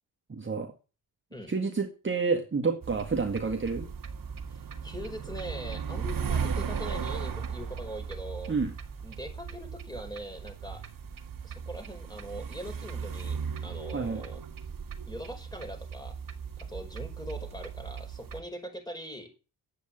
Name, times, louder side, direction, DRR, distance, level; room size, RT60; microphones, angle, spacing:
voice 1, 0.3-0.7 1.5-3.9 8.5-8.7 13.9-14.2, right 4 dB, 30° right, 3 dB, 1.8 m, -29 dB
sound 1, 2.8-18.4, right 6 dB, 50° right, 2.0 m, -37 dB
voice 2, 4.5-8.5 9.0-10.8 11.4-14.4 15.1-16.1 16.6-19.4, equal, 10° left, 3 dB, 5.3 m, -42 dB
10.0 x 8.3 x 8.8 m, 0.33 s
wide cardioid pair, 115°, 41 cm